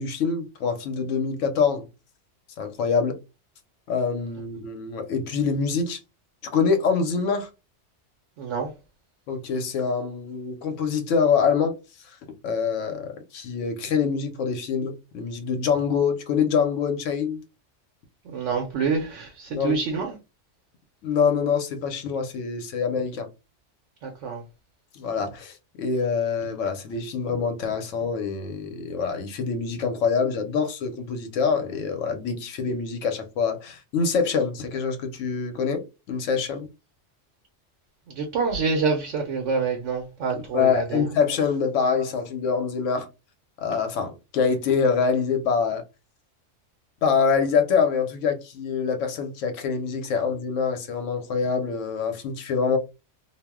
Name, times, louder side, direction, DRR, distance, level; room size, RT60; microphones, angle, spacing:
voice 1, 0.0-1.9 2.6-3.2 3.9-6.0 6.5-7.5 9.3-11.8 12.0-12.2 12.4-17.4 19.5-19.7 21.0-23.3 24.9-35.8 36.1-36.7 40.5-43.1 43.6-45.8 47.0-52.8, left 6 dB, 90° left, 1.0 m, -25 dB
voice 2, 8.4-8.7 18.2-20.1 24.0-24.4 38.1-41.0, right 5 dB, 85° right, 0.9 m, -27 dB
2.3 x 2.0 x 3.4 m
omnidirectional pair, 1.2 m